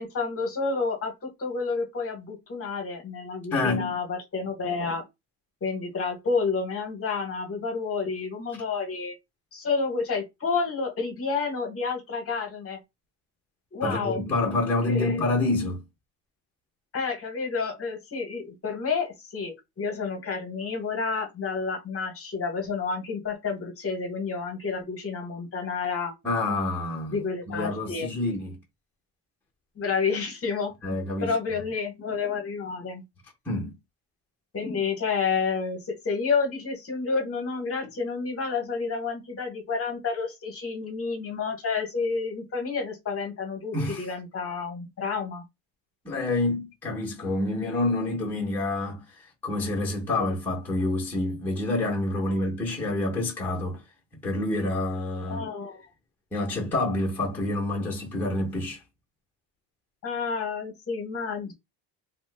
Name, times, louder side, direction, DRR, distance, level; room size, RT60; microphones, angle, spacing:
voice 1, 0.0-5.0 5.6-9.2 9.5-12.8 13.7-14.2 14.9-15.2 16.9-26.1 27.1-28.1 29.8-30.7 31.2-33.0 34.5-45.4 52.3-52.4 55.3-55.8 60.0-61.5, left 4 dB, 30° left, 0.9 m, -30 dB
voice 2, 3.5-3.9 13.8-15.8 26.2-27.2 27.5-28.6 30.8-31.3 33.5-33.7 43.7-44.1 46.0-53.8 54.2-55.4 56.3-58.8, left 2 dB, 5° left, 0.7 m, -27 dB
3.0 x 2.1 x 3.3 m
cardioid pair, 150°, 44 cm